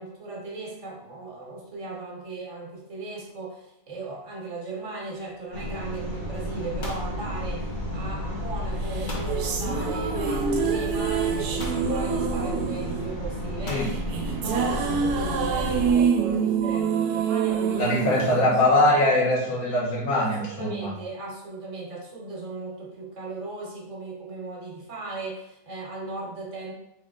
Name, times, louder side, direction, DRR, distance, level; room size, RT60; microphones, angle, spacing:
voice 1, 0.0-13.8 14.4-17.9 20.2-26.7, right 3 dB, 55° right, -2 dB, 1.2 m, -37 dB
sound 1, 5.2-5.5 5.8-6.2 6.5-8.0 9.1-9.4 10.5-10.6 11.6-11.9 13.7-14.0, left 1 dB, 45° left, 0.7 m, -38 dB
sound 2, 5.5-15.9, left 1 dB, 85° left, 2.1 m, -32 dB
sound 3, 8.9-19.3, right 6 dB, 80° right, 1.1 m, -26 dB
voice 2, 17.7-20.9, left 1 dB, 65° left, -4 dB, 1.6 m, -22 dB
3.9 x 3.1 x 3.7 m, 0.86 s
omnidirectional pair, 1.6 m